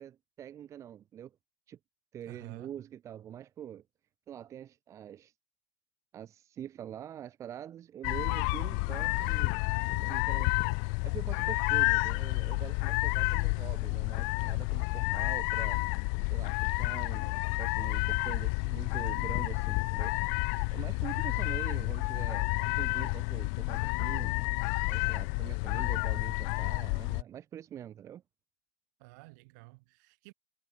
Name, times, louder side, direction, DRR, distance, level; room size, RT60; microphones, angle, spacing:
voice 1, 0.0-1.4 1.7-1.8 2.1-3.8 4.3-5.3 6.1-9.6 9.9-10.6 11.0-15.8 16.2-20.2 20.7-24.4 24.9-28.2, right 10 dB, 30° right, 0.8 m, -45 dB
voice 2, 2.3-2.7 13.1-13.5 21.0-21.6 29.0-30.3, right 28 dB, 60° right, 4.3 m, -51 dB
sound 1, 8.0-27.2, left 40 dB or more, 55° left, 0.4 m, -30 dB
supercardioid pair, 120°, 10 cm